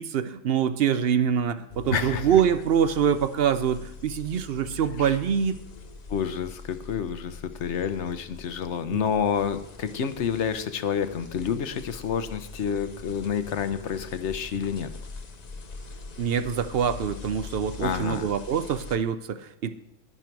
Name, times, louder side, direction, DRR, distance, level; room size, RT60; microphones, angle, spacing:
voice 1, 0.0-5.6 8.9-9.0 16.2-19.7, right 8 dB, 60° right, 12 dB, 0.7 m, -25 dB
sound 1, 1.7-19.0, left 4 dB, 40° left, 0.7 m, -43 dB
voice 2, 1.9-2.4 5.0-5.1 6.1-14.9 17.8-18.3, left 7 dB, 70° left, 11 dB, 1.1 m, -29 dB
11.0 x 10.5 x 4.6 m, 0.80 s
omnidirectional pair, 1.3 m